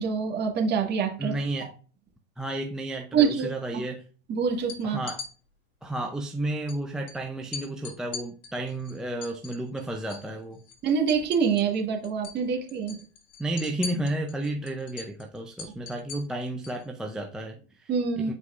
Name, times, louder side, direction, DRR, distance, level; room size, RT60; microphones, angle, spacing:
voice 1, 0.0-1.3 3.1-3.5 3.7-3.8 4.3-5.0 10.8-13.0 17.9-18.3, right 6 dB, 30° right, 1.7 m, -25 dB
voice 2, 1.2-1.7 2.4-4.1 4.8-5.2 5.8-10.6 13.4-17.9 18.2-18.3, right 1 dB, ahead, 0.5 m, -32 dB
sound 1, 4.6-5.3 6.7-6.8 7.1-7.2 7.5-10.3 10.6-11.8 12.0-12.4 12.7-16.8, left 5 dB, 60° left, 2.2 m, -41 dB
8.2 x 4.7 x 2.4 m
hypercardioid pair, 115°, 33 cm